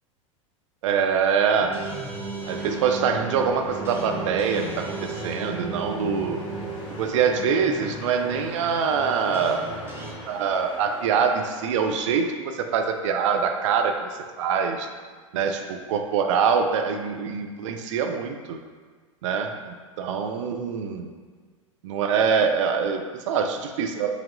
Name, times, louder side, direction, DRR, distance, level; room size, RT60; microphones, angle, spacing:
voice 1, 0.8-1.8 2.5-6.4 7.0-9.7 10.3-14.1 14.4-14.9 15.3-15.6 15.9-18.6 19.2-21.1 21.8-24.1, right 6 dB, 65° right, 5 dB, 0.4 m, -24 dB
sound 1, 1.6-10.1, right 3 dB, 15° right, 0.7 m, -35 dB
sound 2, 2.4-12.2, left 1 dB, 25° left, 1.1 m, -43 dB
4.8 x 2.8 x 2.5 m, 1.5 s
hypercardioid pair, 90°, 17 cm